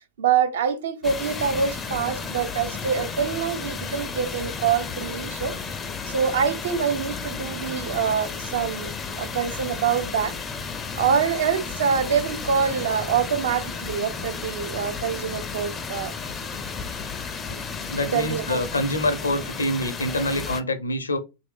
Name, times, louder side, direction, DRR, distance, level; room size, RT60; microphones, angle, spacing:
voice 1, 0.2-5.5 6.1-10.3 11.0-16.1 18.0-18.6, right 7 dB, 60° right, 0.5 m, -25 dB
sound 1, 1.0-20.6, left 5 dB, 20° left, 0.4 m, -33 dB
voice 2, 17.9-21.2, left 1 dB, 75° left, 0.5 m, -26 dB
2.8 x 2.6 x 3.3 m
figure-of-eight pair, 90°, 0 cm